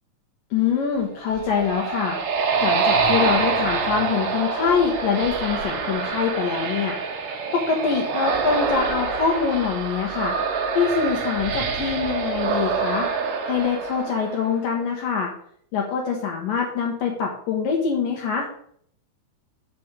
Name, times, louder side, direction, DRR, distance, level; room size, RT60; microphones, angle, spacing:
voice 1, 0.5-2.2 2.6-7.0 7.2-10.3 10.7-13.1 13.5-15.3 15.7-18.5, left 6 dB, 65° left, 0 dB, 2.7 m, -24 dB
sound 1, 1.1-14.7, right 5 dB, 70° right, 1.4 m, -25 dB
7.0 x 6.0 x 6.7 m, 0.63 s
omnidirectional pair, 4.5 m